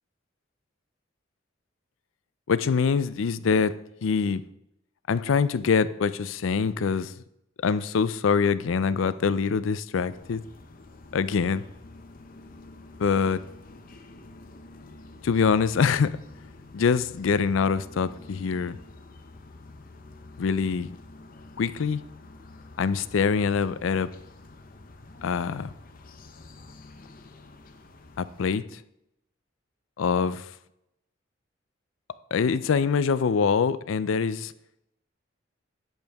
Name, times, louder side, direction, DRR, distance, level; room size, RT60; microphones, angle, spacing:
voice 1, 2.5-3.7 4.0-4.4 5.1-7.1 7.6-10.4 11.1-11.6 13.0-13.4 15.2-16.2 16.7-18.8 20.4-21.0 21.6-22.0 22.8-24.1 25.2-25.7 28.2-28.8 30.0-30.5 32.3-34.5, left 5 dB, 85° left, 0.4 m, -24 dB
sound 1, 10.1-28.6, left 2 dB, 45° left, 0.7 m, -48 dB
8.8 x 8.0 x 3.5 m
head